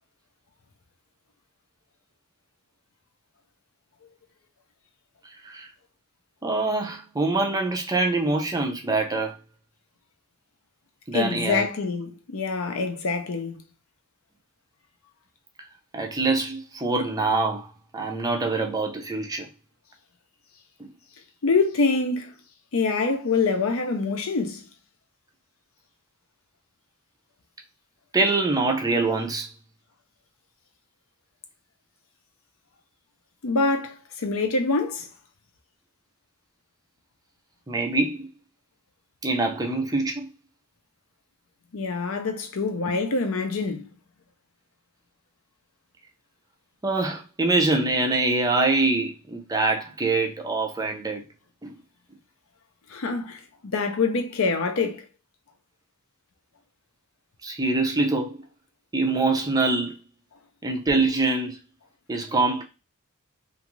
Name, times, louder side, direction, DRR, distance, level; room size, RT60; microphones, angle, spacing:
voice 1, 6.4-9.3 11.1-11.7 15.9-17.7 17.9-19.5 20.8-20.9 28.1-29.5 37.7-38.3 39.2-40.3 46.8-51.2 51.6-51.8 57.4-58.4 58.9-59.9 60.6-61.6 62.1-62.6, right 3 dB, 15° right, 0.5 m, -24 dB
voice 2, 11.1-13.6 21.4-22.3 22.7-24.6 33.4-35.1 41.7-43.9 52.9-53.4 53.7-55.0, left 4 dB, 60° left, 0.5 m, -25 dB
2.5 x 2.4 x 3.0 m
head